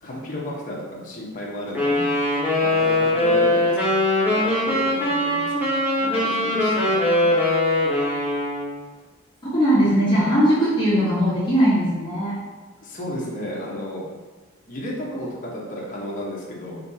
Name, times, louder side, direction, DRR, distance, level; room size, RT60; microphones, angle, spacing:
voice 1, 0.0-2.1 2.6-4.0 4.3-5.7 6.0-7.3 12.8-14.0 14.7-16.8, equal, 40° left, -4 dB, 0.9 m, -33 dB
Wind instrument woodwind instrument, 1.7-8.7, left 1 dB, 10° right, 1.1 m, -21 dB
voice 2, 9.5-12.4, equal, 25° left, -10 dB, 1.4 m, -19 dB
5.2 x 3.0 x 2.8 m, 1.3 s
head